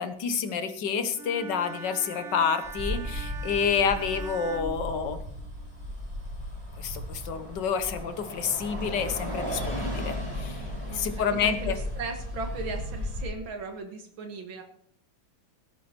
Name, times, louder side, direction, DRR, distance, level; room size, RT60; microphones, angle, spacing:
voice 1, 0.0-5.2 6.8-11.8, left 6 dB, 65° left, 10 dB, 1.7 m, -29 dB
Bowed string instrument, 1.1-5.6, right 5 dB, 50° right, 1.0 m, -42 dB
Bus, 2.6-13.3, left 1 dB, 15° right, 4.2 m, -35 dB
voice 2, 10.9-14.6, right 4 dB, 80° right, 4 dB, 2.3 m, -37 dB
17.5 x 8.9 x 4.4 m, 0.67 s
omnidirectional pair, 2.1 m